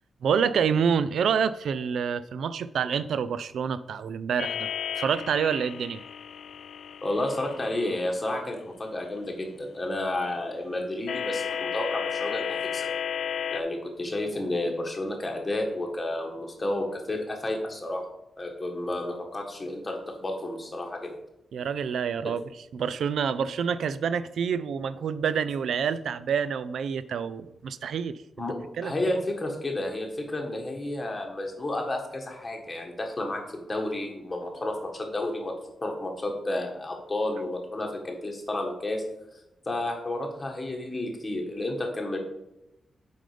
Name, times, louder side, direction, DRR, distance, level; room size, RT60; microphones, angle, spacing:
voice 1, 0.2-4.7 4.9-6.0 21.5-22.4 22.7-28.2 28.8-28.9, right 7 dB, 80° right, 15 dB, 0.3 m, -27 dB
sound 1, 4.4-8.1 11.1-13.6, left 8 dB, 75° left, 0.3 m, -33 dB
voice 2, 7.0-12.9 13.5-18.1 18.4-21.1 22.2-22.3 28.4-35.5 35.8-39.0 39.6-42.2, left 1 dB, 20° left, 1 dB, 1.6 m, -31 dB
7.6 x 5.3 x 5.0 m, 0.91 s
wide cardioid pair, 145°, 0 cm